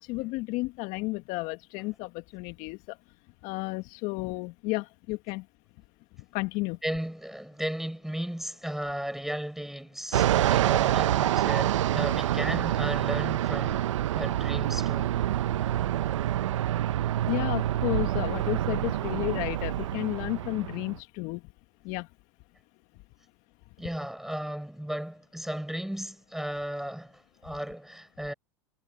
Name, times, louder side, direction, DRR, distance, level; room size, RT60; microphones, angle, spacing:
voice 1, 0.0-3.0 3.4-5.5 6.3-6.8 17.3-21.4 21.8-22.1, left 23 dB, 55° left, 1.6 m, -32 dB
voice 2, 6.8-15.2 20.2-20.3 23.8-28.3, equal, ahead, 6.6 m, -35 dB
Fixed-wing aircraft airplane, 10.1-21.0, right 12 dB, 75° right, 0.9 m, -27 dB
hypercardioid pair, 95°, 16 cm